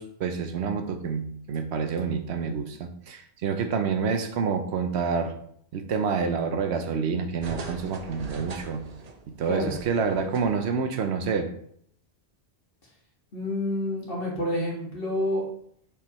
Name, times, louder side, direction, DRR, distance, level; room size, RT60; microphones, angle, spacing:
voice 1, 0.0-5.3 5.7-8.8 9.4-11.5, right 5 dB, 75° right, 7 dB, 0.9 m, -28 dB
sound 1, 7.4-10.8 11.1-11.2, right 4 dB, 45° right, 0.6 m, -41 dB
voice 2, 13.3-15.4, left 1 dB, 55° left, -3 dB, 1.9 m, -28 dB
6.6 x 4.8 x 3.0 m, 0.66 s
omnidirectional pair, 1.1 m